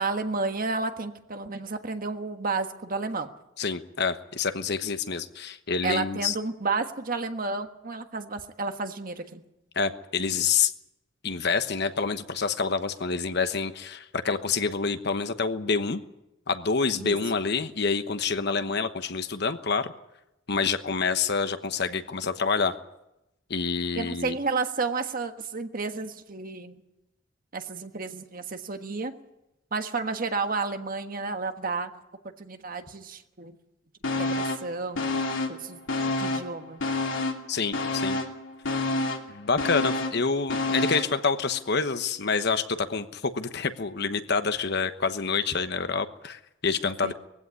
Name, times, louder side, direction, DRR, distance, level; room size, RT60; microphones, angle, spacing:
voice 1, 0.0-3.3 5.8-9.4 17.0-17.2 24.0-26.8 27.5-29.1 29.7-31.9 32.4-33.6 34.2-35.1 35.5-35.8 36.1-36.8 47.0-47.1, right 3 dB, 45° right, 7 dB, 1.4 m, -31 dB
voice 2, 3.6-6.3 9.7-10.7 11.2-16.0 16.5-19.9 20.5-22.7 23.5-24.4 37.5-38.2 39.3-47.1, left 5 dB, 55° left, 10 dB, 1.1 m, -27 dB
sound 1, 34.0-34.7 35.0-36.5 36.8-41.2 41.5-41.6, left 2 dB, 75° left, 2.8 m, -29 dB
20.5 x 16.0 x 9.7 m, 0.90 s
head